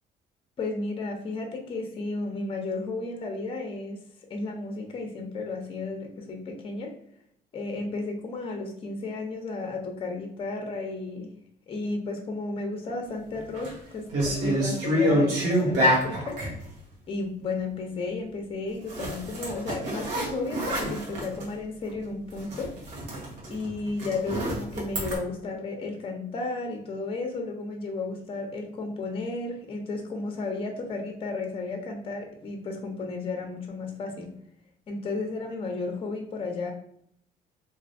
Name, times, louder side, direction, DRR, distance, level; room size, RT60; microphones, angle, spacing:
voice 1, 0.6-4.0 4.3-6.9 7.5-11.3 11.7-16.4 17.1-22.7 23.5-34.3 34.9-36.7, left 3 dB, 30° left, 3 dB, 0.6 m, -33 dB
sound 1, 13.3-13.7 14.1-16.6 18.9-21.5 21.9-22.0 22.3-25.2, equal, 90° right, 1.1 m, -27 dB
3.1 x 2.6 x 2.5 m, 0.70 s
cardioid pair, 110°, 17 cm